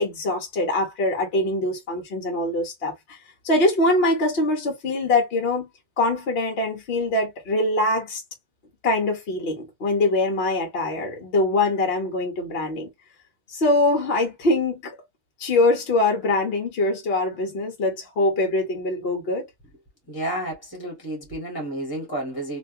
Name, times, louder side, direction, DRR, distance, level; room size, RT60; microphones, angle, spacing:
voice 1, 0.0-3.2 3.4-5.7 6.0-8.2 8.8-12.9 13.5-14.9 15.4-19.5, left 2 dB, 60° left, 1.0 m, -23 dB
voice 2, 20.1-22.6, right 1 dB, 20° left, 1.5 m, -31 dB
3.4 x 2.6 x 2.6 m
omnidirectional pair, 1.3 m